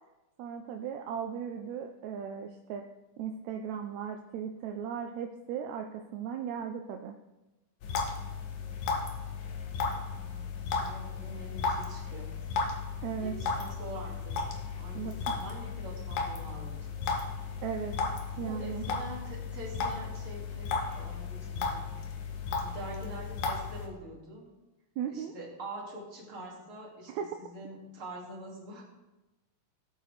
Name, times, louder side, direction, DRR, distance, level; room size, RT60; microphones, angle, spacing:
voice 1, 0.4-2.8 3.2-7.2 13.0-13.3 15.0-15.1 17.6-18.8 25.0-25.3 27.1-27.2, right 8 dB, 75° right, 4 dB, 1.7 m, -37 dB
sound 1, 7.8-23.9, left 4 dB, 85° left, 2.8 m, -35 dB
voice 2, 10.0-12.3 13.2-14.4 14.8-17.0 18.4-22.0 22.6-24.5 25.1-28.9, right 1 dB, 40° right, -3 dB, 3.2 m, -45 dB
18.0 x 8.6 x 3.4 m, 1.0 s
omnidirectional pair, 3.7 m